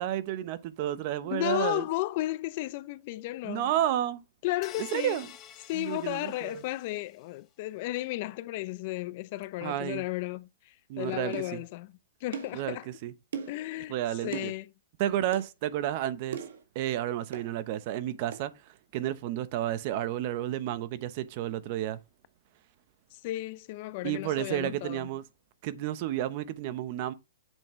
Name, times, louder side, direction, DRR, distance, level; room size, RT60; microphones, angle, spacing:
voice 1, 0.0-1.8 3.4-4.2 4.8-5.3 5.7-6.5 9.6-10.0 10.9-11.6 12.5-12.8 13.0-13.1 13.9-14.5 15.0-16.4 16.7-18.5 18.9-22.0 24.0-25.2 25.6-27.1, right 12 dB, 40° right, 0.9 m, -31 dB
voice 2, 1.2-3.7 4.4-5.2 5.7-12.9 13.5-14.0 14.2-14.7 23.1-25.1, left 18 dB, 40° left, 0.5 m, -34 dB
sound 1, 4.6-7.1, left 11 dB, 25° left, 1.0 m, -49 dB
sound 2, 11.3-11.5 12.3-12.6 13.3-13.6 14.3-14.5 15.3-15.5 16.3-16.6 17.3-17.5 18.3-18.5, right 7 dB, 70° right, 1.8 m, -38 dB
8.3 x 7.1 x 3.2 m
hypercardioid pair, 155°, 0 cm